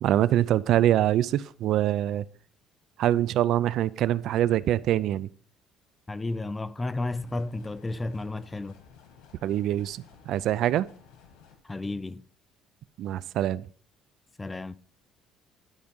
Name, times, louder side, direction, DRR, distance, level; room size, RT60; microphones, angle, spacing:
voice 1, 0.0-2.2 3.0-5.3 9.4-10.9 13.0-13.6, right 12 dB, 65° right, 0.4 m, -24 dB
voice 2, 6.1-8.8 11.6-12.2 14.4-14.8, left 2 dB, 15° left, 0.4 m, -32 dB
sound 1, 7.2-11.6, left 6 dB, 85° left, 2.1 m, -54 dB
11.0 x 4.8 x 5.3 m
cardioid pair, 135°, 0 cm